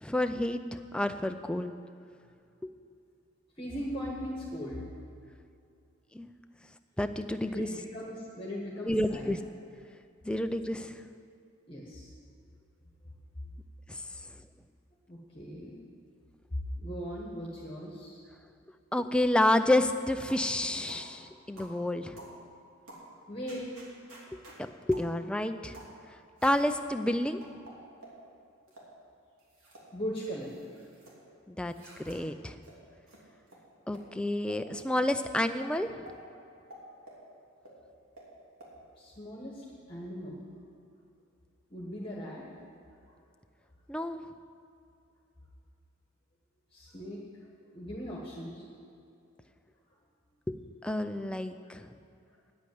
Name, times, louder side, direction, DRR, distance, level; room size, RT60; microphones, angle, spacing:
voice 1, 0.0-1.7 2.6-2.7 6.1-6.4 7.0-7.7 8.9-9.4 10.3-11.0 13.9-14.0 18.9-22.2 24.6-25.8 26.4-27.4 31.5-31.7 32.0-32.6 33.9-36.0 43.9-44.2 50.5-51.9, left 1 dB, 5° left, 8 dB, 0.4 m, -29 dB
voice 2, 3.5-4.9 7.5-9.3 11.7-12.1 15.1-15.8 16.5-18.2 23.3-23.7 29.9-30.7 38.9-40.5 41.7-42.4 43.1-43.2 46.7-48.7, equal, 25° left, -4 dB, 1.5 m, -39 dB
sound 1, 20.3-20.5 20.9-21.1 21.6-21.8 22.2-22.4 22.9-23.1 23.5-24.6 24.9-25.1 25.7-25.9 26.4-26.8 27.4-28.2 28.7-28.9 29.4-29.9 30.2-31.1 31.7-32.2 32.6-32.7 33.1-33.2 33.5-33.6 33.9-34.0 34.5-34.6 35.1-35.2 35.6-35.7 36.1-36.2 36.7-37.2 37.6-37.7 38.2-38.3 38.6-38.7, right 1 dB, 80° right, 3.1 m, -50 dB
10.0 x 8.5 x 9.3 m, 2.5 s
head